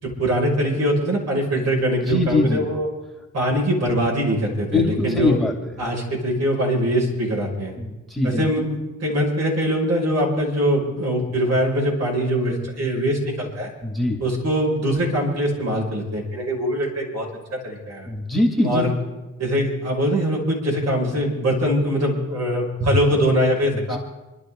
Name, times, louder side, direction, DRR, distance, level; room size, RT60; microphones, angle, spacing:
voice 1, 0.0-2.9 3.3-5.4 5.8-7.7 8.2-13.7 14.2-17.3 17.5-18.1 18.6-18.9 19.4-24.0, equal, 60° right, -2 dB, 6.1 m, -22 dB
voice 2, 2.1-2.7 4.7-5.5 7.8-8.6 13.8-14.2 18.1-18.8 23.9-24.0, left 2 dB, ahead, 0 dB, 2.3 m, -22 dB
28.5 x 11.5 x 3.8 m, 1.1 s
cardioid pair, 90°, 30 cm